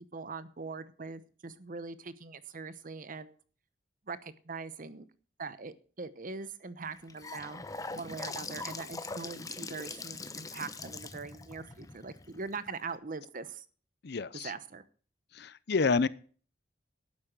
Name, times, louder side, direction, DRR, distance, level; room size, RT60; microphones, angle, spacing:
voice 1, 0.1-3.4 4.1-5.1 5.4-7.6 7.9-13.6 14.4-14.8, right 4 dB, 50° right, 14 dB, 0.9 m, -42 dB
Gurgling / Sink (filling or washing) / Bathtub (filling or washing), 6.8-12.9, left 3 dB, 20° left, 0.8 m, -42 dB
voice 2, 14.0-14.5 15.3-16.1, left 4 dB, 60° left, 18 dB, 0.6 m, -28 dB
12.0 x 8.8 x 6.0 m, 0.42 s
head